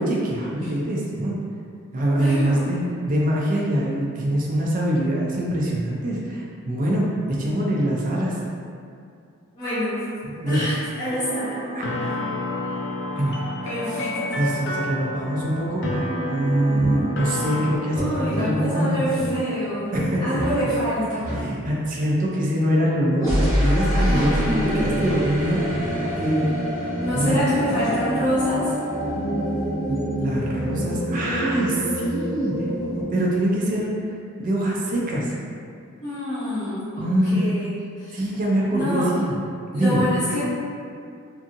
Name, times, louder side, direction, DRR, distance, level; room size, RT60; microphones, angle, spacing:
voice 1, 0.0-1.3 1.9-7.0 7.4-8.3 10.3-10.6 11.7-11.9 13.2-13.3 14.4-16.0 16.3-19.0 19.9-20.4 21.3-25.9 26.2-26.5 27.1-27.4 29.9-32.5 32.9-33.9 34.4-35.3 37.0-37.4 38.1-39.3 39.7-40.0, right 1 dB, 40° right, -4 dB, 0.5 m, -24 dB
voice 2, 2.1-2.6 9.6-10.0 10.5-11.6 13.6-14.4 16.7-17.2 17.9-19.9 20.2-21.3 23.9-24.9 27.0-28.7 36.0-38.2 38.7-39.1 39.7-40.4, equal, 20° left, -15 dB, 0.7 m, -27 dB
sound 1, 11.1-17.8, left 1 dB, 55° left, 0.3 m, -29 dB
sound 2, 15.8-15.9 16.7-16.9 17.9-18.5 19.1-19.3 19.9-20.1 20.3-20.6 21.2-21.4 23.2-33.0, equal, 15° right, 0.9 m, -26 dB
2.6 x 2.5 x 2.5 m, 2.4 s
head